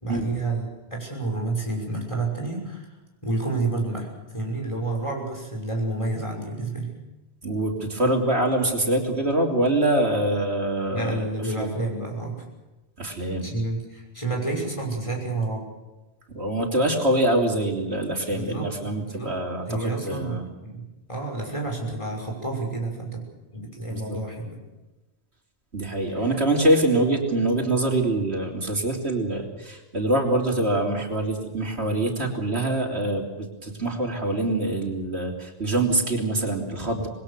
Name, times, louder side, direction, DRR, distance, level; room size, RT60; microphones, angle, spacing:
voice 1, 0.0-2.9 3.2-6.9 10.9-12.4 13.4-15.7 18.3-19.3 19.6-23.2 23.5-24.6 26.2-26.3, right 2 dB, 30° left, 0 dB, 6.1 m, -30 dB
voice 2, 7.4-11.7 13.0-13.5 16.3-20.5 23.9-24.2 25.7-37.1, right 1 dB, 75° right, 1 dB, 3.6 m, -24 dB
26.5 x 20.5 x 6.8 m, 1.1 s
omnidirectional pair, 1.1 m